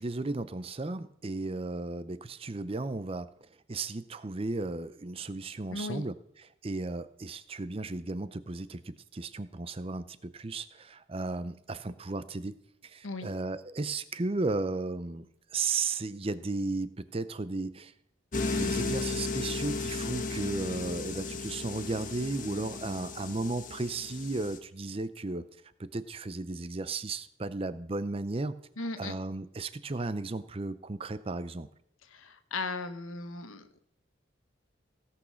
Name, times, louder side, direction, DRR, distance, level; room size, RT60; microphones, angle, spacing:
voice 1, 0.0-3.3 3.7-6.1 6.6-12.6 12.8-15.2 15.5-17.9 18.5-25.5 25.8-28.6 29.0-31.7, right 3 dB, 30° right, 14 dB, 0.5 m, -34 dB
voice 2, 5.7-6.1 13.0-13.3 28.8-29.1 32.1-33.8, left 3 dB, 85° left, 10 dB, 1.2 m, -37 dB
sound 1, 18.3-24.6, left 3 dB, 40° left, 1.2 m, -35 dB
17.0 x 6.2 x 6.2 m, 0.76 s
head